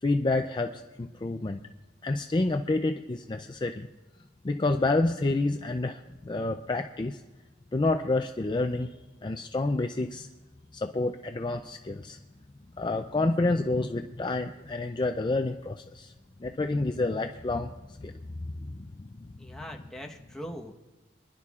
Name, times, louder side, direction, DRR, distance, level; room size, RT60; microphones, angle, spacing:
voice 1, 0.0-1.6 2.0-3.9 4.4-6.0 6.3-7.2 7.7-8.9 9.2-10.3 10.7-12.2 12.8-16.1 16.4-17.7 18.0-19.1, left 2 dB, 25° left, 5 dB, 0.4 m, -29 dB
voice 2, 19.4-20.7, equal, 5° left, 1 dB, 1.1 m, -41 dB
26.5 x 11.0 x 2.4 m, 1.2 s
head